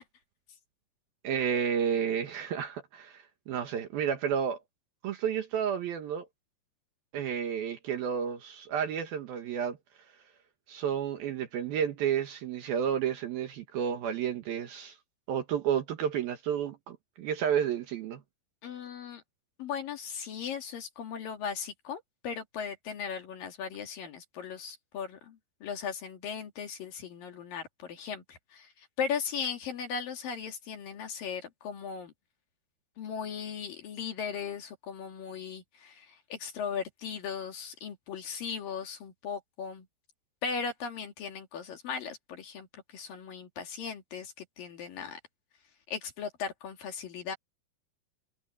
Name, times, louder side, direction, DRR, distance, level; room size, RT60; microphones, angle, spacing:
voice 1, 1.2-4.6 5.0-6.3 7.1-9.8 10.7-15.0 15.3-18.2, right 8 dB, 65° right, 2.8 m, -31 dB
voice 2, 18.6-19.2 19.6-32.1 33.0-39.9 40.4-45.2 45.9-47.4, left 6 dB, 55° left, 3.3 m, -37 dB
omnidirectional pair, 5.3 m